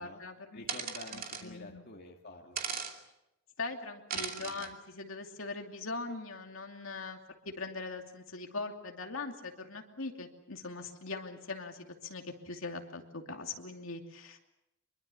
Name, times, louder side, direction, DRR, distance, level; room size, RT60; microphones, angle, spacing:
voice 1, 0.0-0.7 1.1-1.8 3.6-7.2 7.4-14.4, left 3 dB, 65° left, 3 dB, 2.7 m, -41 dB
voice 2, 0.5-2.6 4.1-4.7, left 2 dB, 50° left, 1 dB, 2.2 m, -49 dB
sound 1, 0.7-1.4 2.6-2.9 4.1-4.7, right 6 dB, 40° right, 2.7 m, -37 dB
25.5 x 23.0 x 7.1 m, 0.89 s
head